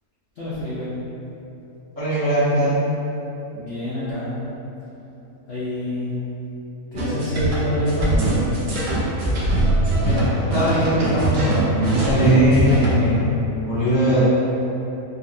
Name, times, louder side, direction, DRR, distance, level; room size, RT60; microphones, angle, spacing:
voice 1, 0.3-0.9 3.5-4.3 5.5-6.2 6.9-8.5, left 1 dB, 60° left, -10 dB, 0.7 m, -26 dB
voice 2, 2.0-2.8 10.0-13.2 13.6-14.2, equal, 20° right, -15 dB, 1.0 m, -20 dB
sound 1, 6.9-12.9, right 2 dB, 60° right, 0.7 m, -21 dB
3.6 x 2.9 x 2.6 m, 3.0 s
omnidirectional pair, 1.7 m